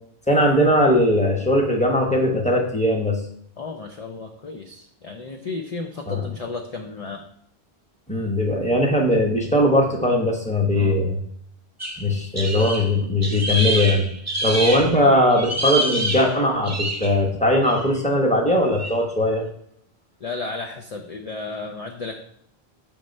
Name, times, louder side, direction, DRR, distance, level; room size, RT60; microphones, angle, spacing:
voice 1, 0.3-3.2 6.1-6.3 8.1-11.2 12.0-14.1 14.4-19.4, left 1 dB, 5° left, 0 dB, 1.0 m, -19 dB
voice 2, 3.6-7.3 10.7-11.0 14.4-14.5 20.2-22.1, left 3 dB, 45° left, 3 dB, 0.6 m, -33 dB
sound 1, 11.8-15.0 15.3-17.2 17.6-18.0 18.7-19.0, right 1 dB, 20° right, 0.6 m, -27 dB
7.2 x 3.2 x 5.2 m, 0.69 s
omnidirectional pair, 1.1 m